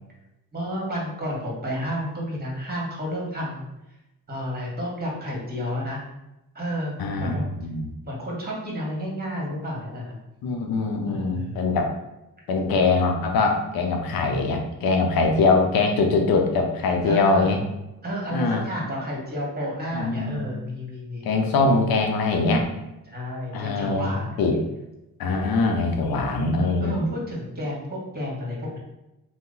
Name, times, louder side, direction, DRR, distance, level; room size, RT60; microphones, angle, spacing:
voice 1, 0.5-3.7 4.3-6.0 6.5-7.5 8.0-10.2 11.1-11.6 17.0-17.5 18.0-21.3 23.1-24.6 26.8-28.8, equal, 25° right, -4 dB, 1.5 m, -31 dB
voice 2, 7.0-7.9 10.4-11.9 12.5-17.6 18.3-18.7 19.9-20.4 21.2-22.7 23.5-24.5 25.2-27.1, left 3 dB, 75° left, 3 dB, 0.7 m, -22 dB
2.8 x 2.1 x 3.8 m, 0.94 s
supercardioid pair, 55°, 37 cm